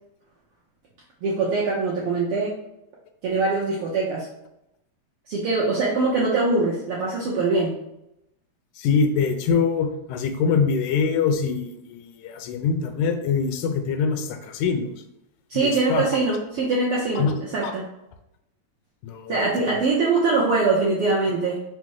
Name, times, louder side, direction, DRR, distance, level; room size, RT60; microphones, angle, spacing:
voice 1, 1.2-2.5 3.2-4.3 5.3-7.7 15.5-17.9 19.3-21.6, right 3 dB, 75° right, -5 dB, 1.3 m, -23 dB
voice 2, 8.8-14.9 15.6-16.1 17.2-17.4 17.6-17.7 19.0-19.4, left 5 dB, 90° left, 7 dB, 2.0 m, -24 dB
5.6 x 2.1 x 4.6 m, 0.83 s
omnidirectional pair, 3.4 m